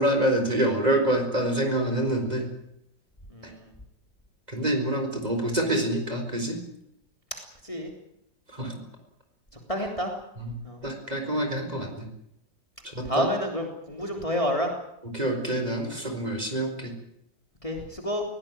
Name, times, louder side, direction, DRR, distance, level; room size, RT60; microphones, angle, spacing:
voice 1, 0.0-2.5 3.4-3.5 4.5-6.6 8.5-8.8 10.4-10.5 10.8-12.1 12.9-13.3 15.1-16.9, right 1 dB, 20° right, 4 dB, 4.6 m, -26 dB
voice 2, 3.3-3.7 7.6-7.9 9.7-10.1 10.6-10.8 13.0-14.7 17.6-18.2, equal, 15° left, 2 dB, 3.3 m, -29 dB
22.5 x 18.0 x 8.9 m, 0.78 s
omnidirectional pair, 2.0 m